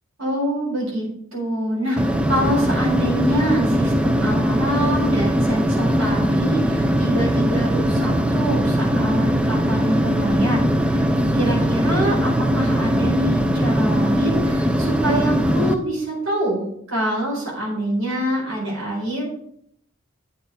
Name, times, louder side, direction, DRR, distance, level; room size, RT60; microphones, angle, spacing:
voice 1, 0.2-1.1 1.3-19.2, right 1 dB, 70° right, -4 dB, 4.3 m, -25 dB
sound 1, 2.0-15.7, equal, 5° right, 0.4 m, -20 dB
9.2 x 6.7 x 4.9 m, 0.70 s
head